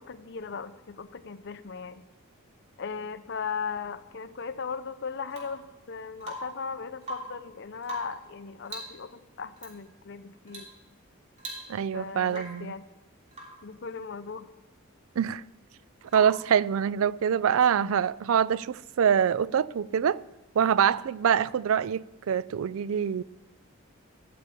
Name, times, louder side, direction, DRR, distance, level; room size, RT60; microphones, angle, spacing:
voice 1, 0.0-2.0 2.8-10.7 11.9-12.8 13.6-14.5, left 5 dB, 50° left, 0.6 m, -37 dB
Rain / Water tap faucet / Drip, 5.3-5.7 6.2-6.7 7.0-7.4 7.8-8.3 8.6-9.0 9.6-9.8 10.5-10.8 11.0-11.1 11.4-11.9 12.3-12.7 13.3-13.6 16.1-16.5 18.4-18.5, right 1 dB, 35° right, 3.1 m, -41 dB
voice 2, 11.7-12.7 15.2-15.4 16.1-20.2 20.6-23.2, right 8 dB, 65° right, 0.3 m, -25 dB
13.5 x 6.9 x 8.3 m
head